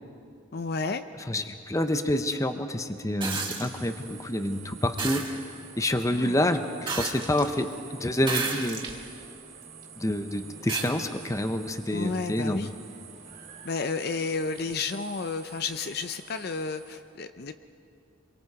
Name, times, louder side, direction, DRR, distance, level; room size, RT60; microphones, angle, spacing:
voice 1, 0.5-1.0 6.1-6.4 11.9-12.7 13.6-17.5, left 4 dB, 50° left, 10 dB, 0.5 m, -31 dB
voice 2, 1.3-5.4 5.8-8.9 10.0-12.7, left 1 dB, 15° left, 8 dB, 0.8 m, -28 dB
sound 1, 3.2-3.7 5.0-5.3 6.9-7.5 8.2-9.0 9.6-9.7 10.7-10.9 12.4-12.5, right 4 dB, 25° right, 1.8 m, -31 dB
sound 2, 3.6-17.0, right 6 dB, 40° right, 3.3 m, -48 dB
27.0 x 23.0 x 4.8 m, 2.5 s
head